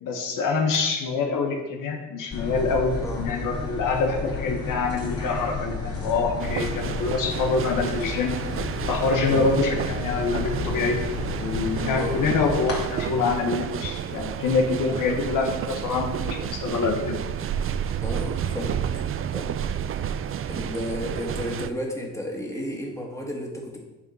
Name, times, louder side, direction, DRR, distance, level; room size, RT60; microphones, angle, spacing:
voice 1, 0.0-8.4 8.9-11.0 11.4-17.2, left 4 dB, 75° left, 2 dB, 1.1 m, -25 dB
sound 1, 2.3-12.8, left 4 dB, 45° left, 2.6 m, -32 dB
sound 2, 6.4-21.7, right 9 dB, 45° right, 0.4 m, -31 dB
voice 2, 18.0-19.0 19.3-19.5 20.5-23.8, left 1 dB, 10° left, -1 dB, 1.9 m, -33 dB
8.7 x 3.6 x 5.4 m, 1.1 s
supercardioid pair, 70°, 32 cm